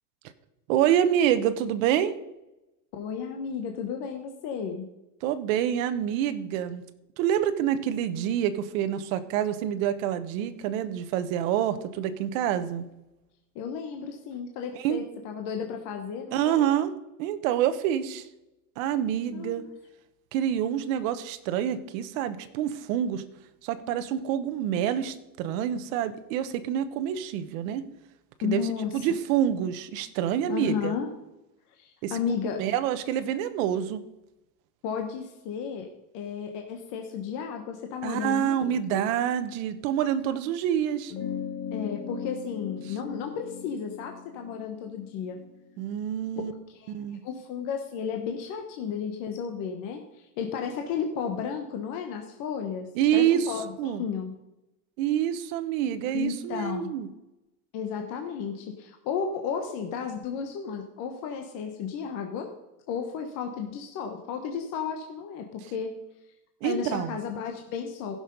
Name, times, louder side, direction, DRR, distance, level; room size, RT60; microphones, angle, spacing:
voice 1, 0.7-2.2 5.2-6.8 7.2-12.8 14.7-15.0 16.3-16.9 17.2-18.3 18.8-19.6 20.3-23.2 23.6-27.8 28.4-30.9 32.0-32.1 32.6-34.0 38.0-41.1 45.8-46.5 46.9-47.2 52.9-54.0 55.0-57.1 66.6-67.2, right 10 dB, 50° right, 11 dB, 1.0 m, -27 dB
voice 2, 2.9-4.9 13.5-16.7 19.3-19.7 28.4-28.9 30.5-31.1 31.8-32.6 34.8-35.9 36.1-39.1 41.7-45.4 46.4-46.5 46.8-46.9 47.2-54.3 56.1-56.9 57.7-62.5 62.9-65.9 66.6-68.2, left 6 dB, 40° left, 3 dB, 1.1 m, -33 dB
sound 1, 41.1-46.0, left 8 dB, 75° left, 1.9 m, -38 dB
15.5 x 6.5 x 5.3 m, 0.94 s
supercardioid pair, 155°, 50 cm